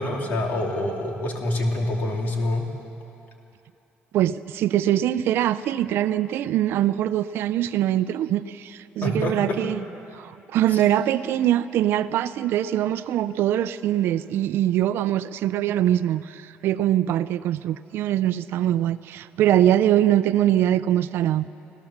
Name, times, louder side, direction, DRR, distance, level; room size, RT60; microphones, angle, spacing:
voice 1, 0.0-2.6 9.0-9.6, left 1 dB, 45° left, 1 dB, 2.8 m, -26 dB
voice 2, 4.1-9.8 10.1-21.5, right 12 dB, 70° right, 14 dB, 0.6 m, -23 dB
26.0 x 16.5 x 7.3 m, 2.8 s
cardioid pair, 160°, 4 cm